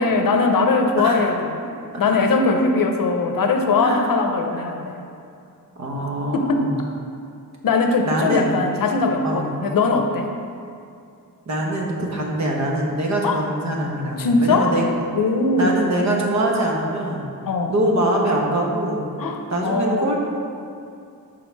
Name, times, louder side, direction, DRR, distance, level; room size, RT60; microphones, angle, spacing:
voice 1, 0.0-1.6 2.0-5.0 6.3-6.7 7.6-10.3 13.2-13.3 14.2-14.7 15.1-16.1 17.4-17.8 19.2-20.2, left 3 dB, 75° left, 4 dB, 0.7 m, -20 dB
voice 2, 5.8-6.8 8.0-8.6 9.2-9.5 11.5-14.9 15.6-17.2 17.7-19.0 19.5-20.2, right 1 dB, 50° right, -1 dB, 1.0 m, -23 dB
6.3 x 4.6 x 4.6 m, 2.5 s
wide cardioid pair, 180°, 34 cm